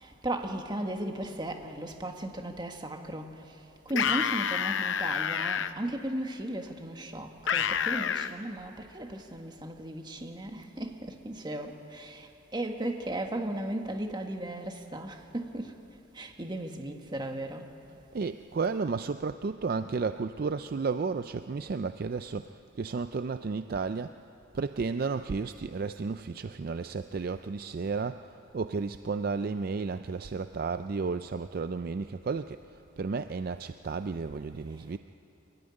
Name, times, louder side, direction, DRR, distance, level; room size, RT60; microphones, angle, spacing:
voice 1, 0.0-15.8 16.1-17.7 34.7-34.9, right 1 dB, 20° right, 4 dB, 1.4 m, -36 dB
sound 1, 3.9-5.7 7.5-8.3, left 7 dB, 65° left, 0.6 m, -28 dB
voice 2, 18.1-24.1 24.5-28.2 28.5-32.6 33.0-35.0, right 4 dB, 45° right, 10 dB, 0.4 m, -32 dB
23.5 x 13.5 x 9.8 m, 2.8 s
head